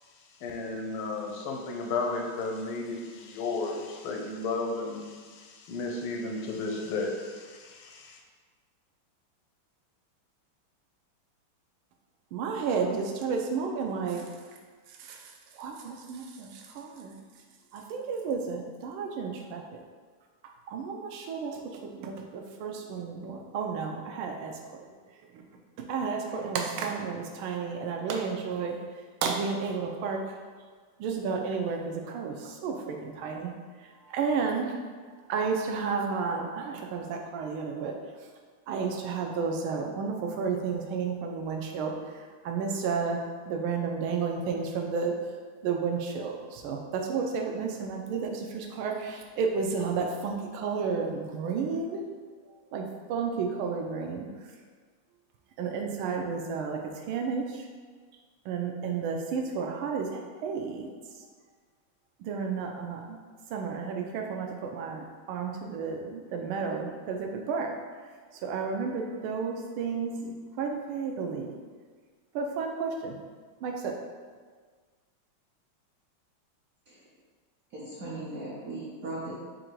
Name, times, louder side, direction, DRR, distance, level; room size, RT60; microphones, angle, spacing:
voice 1, 0.4-8.2, left 3 dB, 85° left, 2 dB, 1.4 m, -33 dB
voice 2, 12.3-14.2 15.0-17.1 17.7-19.8 20.7-24.6 25.3-25.4 25.8-28.8 29.2-30.2 31.0-33.5 34.0-34.7 35.3-37.9 38.7-45.2 45.6-52.0 52.7-54.3 55.6-56.8 57.1-57.7 58.4-60.9 62.2-63.0 63.5-67.8 68.4-71.5 72.3-73.2 73.6-73.9, right 5 dB, 90° right, 2 dB, 1.4 m, -32 dB
voice 3, 77.7-79.3, right 2 dB, 60° right, -7 dB, 0.9 m, -38 dB
4.6 x 2.6 x 4.4 m, 1.5 s
omnidirectional pair, 2.3 m